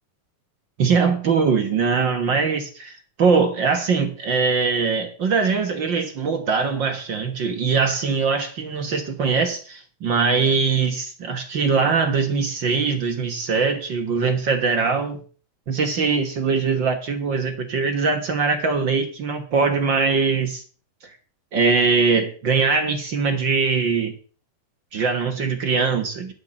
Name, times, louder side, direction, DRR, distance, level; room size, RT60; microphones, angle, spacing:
voice 1, 0.8-15.2 15.7-20.6 21.5-24.1 24.9-26.3, right 5 dB, 55° right, 6 dB, 1.3 m, -22 dB
11.5 x 6.6 x 8.6 m, 0.41 s
omnidirectional pair, 3.8 m